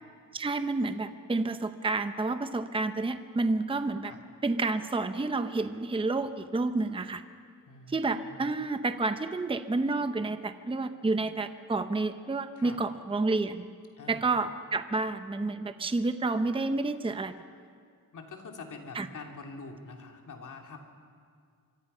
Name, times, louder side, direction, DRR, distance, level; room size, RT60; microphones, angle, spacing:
voice 1, 0.3-4.1 4.4-7.2 7.9-13.7 14.1-17.3 18.9-19.1, right 3 dB, 15° right, 9 dB, 0.7 m, -30 dB
voice 2, 7.7-8.5 12.5-12.8 14.0-14.3 18.1-20.8, left 3 dB, 60° left, 2 dB, 2.9 m, -45 dB
25.5 x 24.5 x 5.6 m, 2.2 s
wide cardioid pair, 155°, 34 cm